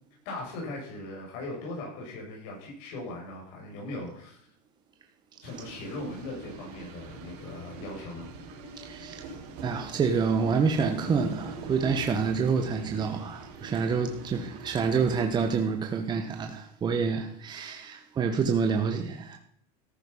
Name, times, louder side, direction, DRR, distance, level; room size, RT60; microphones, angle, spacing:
voice 1, 0.3-4.4 5.4-8.3, left 2 dB, 55° left, 7.1 m, -39 dB
sound 1, 5.4-15.3, right 3 dB, 55° right, 4.6 m, -43 dB
voice 2, 8.8-9.3 9.6-19.4, right 5 dB, 20° right, 1.4 m, -27 dB
14.0 x 11.0 x 5.6 m
supercardioid pair, 145°, 20 cm